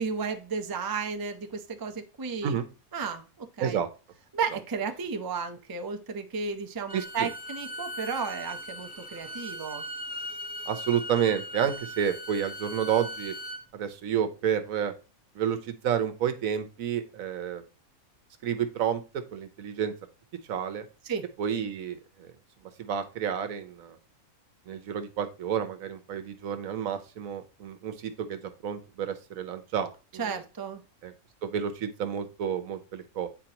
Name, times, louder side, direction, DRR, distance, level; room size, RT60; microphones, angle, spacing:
voice 1, 0.0-2.6 2.9-3.8 4.3-9.8 21.0-21.3 30.2-30.8, right 5 dB, 25° right, 6 dB, 0.4 m, -33 dB
Bowed string instrument, 6.9-13.6, equal, 5° right, 0.8 m, -39 dB
voice 2, 6.9-7.3 10.7-13.3 13.7-14.9 15.3-17.6 18.4-19.9 20.5-20.8 21.4-22.3 22.8-24.0 24.7-30.4 31.0-31.1 31.4-33.3, right 8 dB, 75° right, 10 dB, 1.2 m, -30 dB
9.1 x 4.4 x 2.9 m, 0.32 s
omnidirectional pair, 1.4 m